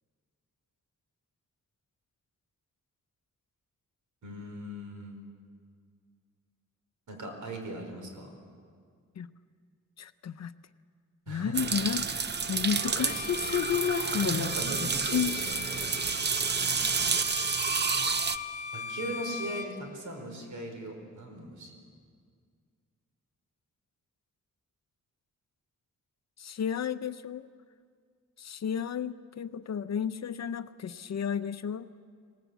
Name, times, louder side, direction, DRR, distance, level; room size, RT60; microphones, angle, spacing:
voice 1, 4.2-5.2 7.1-8.4 11.3-11.7 14.2-15.6 16.5-16.8 18.7-21.7, right 1 dB, 75° right, 3 dB, 5.0 m, -39 dB
voice 2, 10.0-10.5 11.3-14.5 14.8-15.4 16.0-16.1 16.4-17.1 26.4-27.5 28.4-31.9, left 8 dB, 55° left, 12 dB, 0.7 m, -32 dB
sound 1, 11.5-18.4, right 5 dB, 35° right, 0.7 m, -30 dB
Bowed string instrument, 13.0-19.8, left 6 dB, 30° left, 1.3 m, -40 dB
26.0 x 18.0 x 8.2 m, 2.1 s
wide cardioid pair, 145°, 31 cm